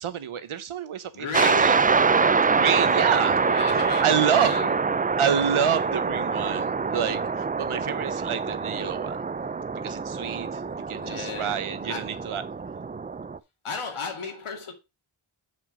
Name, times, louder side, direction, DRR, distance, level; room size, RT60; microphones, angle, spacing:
voice 1, 0.0-1.8 2.6-3.4 4.0-4.6 5.2-9.2 9.8-12.4, right 8 dB, 85° right, 1.0 m, -28 dB
voice 2, 1.1-2.1 3.4-4.7 11.0-12.4 13.6-14.7, left 5 dB, 90° left, 2.2 m, -35 dB
sound 1, 1.3-13.4, right 5 dB, 20° right, 0.4 m, -25 dB
7.1 x 5.5 x 5.0 m
cardioid pair, 65°, 48 cm